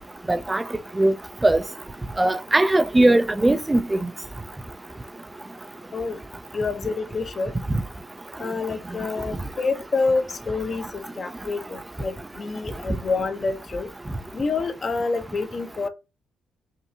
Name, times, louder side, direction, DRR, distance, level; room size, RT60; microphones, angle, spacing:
voice 1, 0.3-0.6 1.0-1.1 1.4-1.6 2.2-4.1, right 1 dB, 15° right, 0.4 m, -19 dB
voice 2, 6.5-7.5 8.4-13.9 14.3-15.9, left 4 dB, 40° left, 0.8 m, -27 dB
5.3 x 2.7 x 2.7 m
cardioid pair, 90°, 0 cm